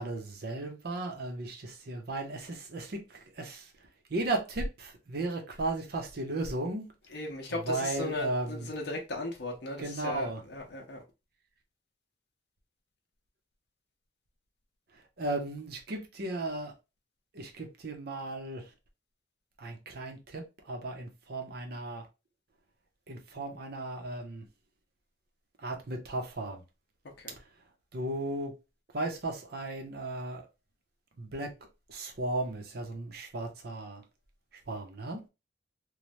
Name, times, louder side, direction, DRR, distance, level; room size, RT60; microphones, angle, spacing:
voice 1, 0.0-3.7 4.1-6.9 7.5-8.7 9.8-10.4 14.9-16.7 17.3-18.7 19.6-22.1 23.1-24.5 25.6-26.6 27.4-27.5 27.9-28.6 28.9-30.5 31.2-31.5 31.9-34.0 34.5-35.2, right 2 dB, 60° right, 0.7 m, -35 dB
voice 2, 7.1-11.0 27.2-27.4, left 2 dB, 65° left, 0.6 m, -37 dB
3.1 x 2.2 x 2.6 m
head